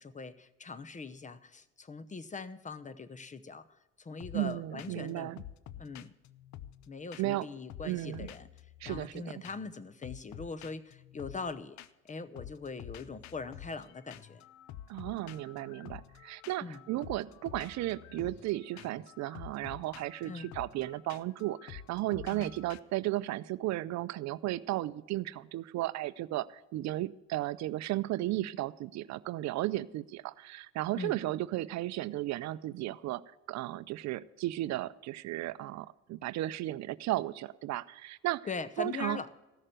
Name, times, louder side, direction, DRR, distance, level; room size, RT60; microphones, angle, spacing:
voice 1, 0.0-3.7 4.0-5.3 5.8-6.1 6.9-8.5 8.8-11.8 12.1-14.4 16.6-16.8 20.3-20.5 22.3-22.5 31.0-31.2 38.5-39.3, left 4 dB, 25° left, 15 dB, 0.8 m, -41 dB
sound 1, 4.2-4.5 4.8-5.1 5.4-7.4 7.7-9.2 9.4-9.8 10.0-12.1 12.4-22.8, left 11 dB, 65° left, 0.7 m, -49 dB
voice 2, 4.3-5.4 7.2-7.5 7.8-8.3 8.8-9.2 14.9-33.2 33.5-38.4 38.8-39.2, right 16 dB, 60° right, 17 dB, 0.5 m, -34 dB
14.5 x 6.6 x 7.6 m, 1.0 s
supercardioid pair, 80°, 31 cm